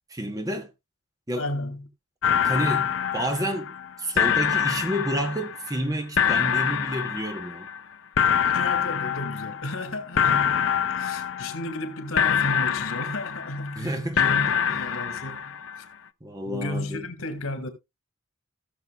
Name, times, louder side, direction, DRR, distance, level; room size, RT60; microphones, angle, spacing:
voice 1, 0.1-0.7 1.3-1.5 2.4-7.7 13.8-14.8 16.2-17.1, equal, 15° right, 1.1 m, -30 dB
voice 2, 1.4-1.8 8.5-15.5 16.4-17.7, left 1 dB, 80° left, 2.2 m, -33 dB
sound 1, 2.2-3.9 4.2-5.8 6.2-7.8 8.2-9.9 10.2-11.9 12.2-13.8 14.2-15.8, left 8 dB, 65° left, 0.5 m, -25 dB
17.5 x 6.8 x 2.4 m
head